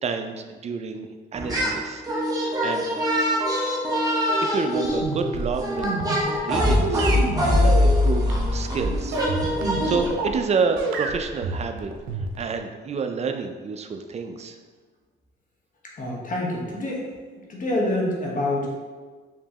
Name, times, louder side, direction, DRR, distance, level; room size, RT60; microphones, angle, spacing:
voice 1, 0.0-2.0 2.3-3.0 4.4-5.9 6.2-7.1 7.4-9.2 9.6-11.9 12.4-14.6, right 5 dB, 35° right, 6 dB, 0.4 m, -29 dB
sound 1, 1.3-1.8 2.0-10.1, left 1 dB, 20° right, 1.2 m, -23 dB
sound 2, 4.7-10.4 10.8-12.6, right 3 dB, 90° right, 0.5 m, -28 dB
voice 2, 16.0-17.1 17.5-18.7, left 1 dB, 40° left, -2 dB, 1.0 m, -26 dB
4.5 x 2.9 x 2.8 m, 1.4 s
cardioid pair, 90°, 20 cm